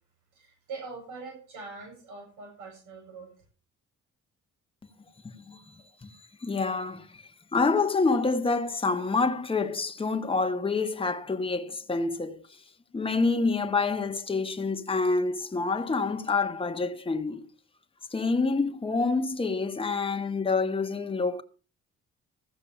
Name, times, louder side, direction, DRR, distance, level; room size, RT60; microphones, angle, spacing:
voice 1, 0.3-3.3, right 4 dB, 90° right, 7.9 m, -43 dB
voice 2, 5.2-5.7 6.0-7.2 7.5-12.4 12.9-17.5 18.1-21.4, left 4 dB, 20° left, 1.2 m, -27 dB
14.5 x 6.1 x 7.1 m
cardioid pair, 90°, 30 cm